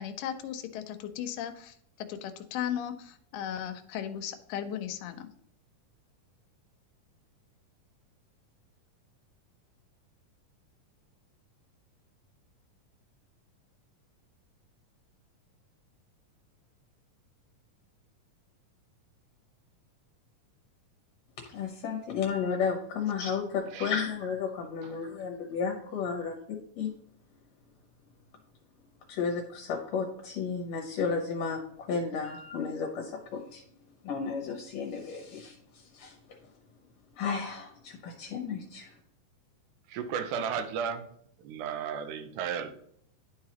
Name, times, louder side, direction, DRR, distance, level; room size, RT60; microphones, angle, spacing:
voice 1, 0.0-5.3, left 9 dB, 85° left, 7 dB, 2.2 m, -36 dB
voice 2, 21.5-26.3 26.8-26.9 29.1-33.6 34.0-36.1 37.2-38.9, left 6 dB, 65° left, 1 dB, 1.8 m, -33 dB
voice 3, 39.9-41.1 41.4-42.7, right 7 dB, 80° right, 9 dB, 2.1 m, -34 dB
11.5 x 4.8 x 2.9 m, 0.66 s
omnidirectional pair, 3.8 m